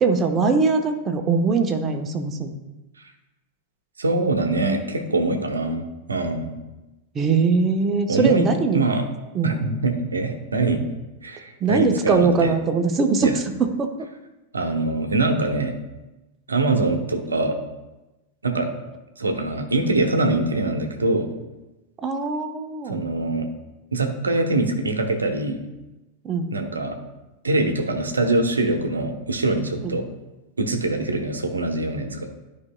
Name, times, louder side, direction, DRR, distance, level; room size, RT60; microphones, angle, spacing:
voice 1, 0.0-2.5 7.1-8.8 9.3-9.7 11.6-13.9 22.0-23.0 26.2-26.5 29.8-30.0, right 4 dB, 25° right, 5 dB, 0.8 m, -21 dB
voice 2, 4.0-6.5 8.1-8.5 8.7-9.0 9.4-10.8 11.2-12.5 13.2-13.4 14.5-15.8 16.5-17.6 18.4-18.7 19.2-21.3 22.9-23.5 23.9-25.6 26.5-27.0 27.4-30.1 30.6-32.3, right 2 dB, 75° right, 6 dB, 0.9 m, -23 dB
12.5 x 5.1 x 2.2 m, 1.0 s
figure-of-eight pair, 90°, 0 cm